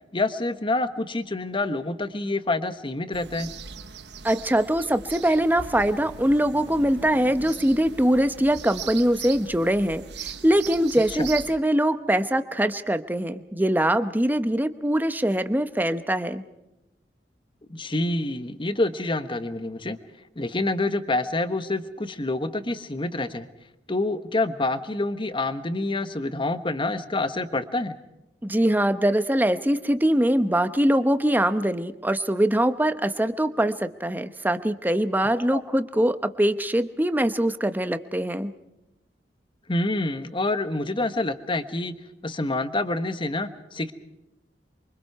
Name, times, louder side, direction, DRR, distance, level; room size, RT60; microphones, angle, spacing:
voice 1, 0.1-3.5 11.1-11.3 17.7-20.0 20.4-23.5 23.9-28.0 35.5-35.6 39.7-41.9 42.2-43.9, left 2 dB, 30° left, 10 dB, 1.3 m, -27 dB
sound 1, 3.1-11.5, right 6 dB, 75° right, 1.2 m, -40 dB
voice 2, 4.2-16.4 28.4-38.5, right 1 dB, 10° right, 10 dB, 0.9 m, -23 dB
28.5 x 24.0 x 4.8 m, 0.91 s
head